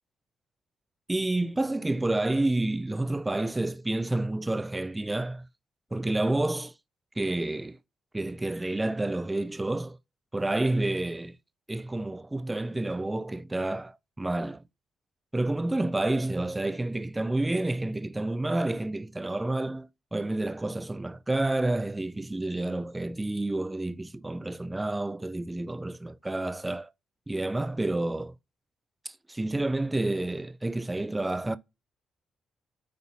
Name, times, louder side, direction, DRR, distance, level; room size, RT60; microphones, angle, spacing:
voice 1, 1.1-5.5 5.9-6.7 7.2-7.8 8.1-10.0 10.3-11.4 11.7-14.6 15.3-26.9 27.3-28.3 29.1-31.6, right 2 dB, 15° right, 0.4 m, -29 dB
9.6 x 3.9 x 4.3 m
cardioid pair, 90°, 0 cm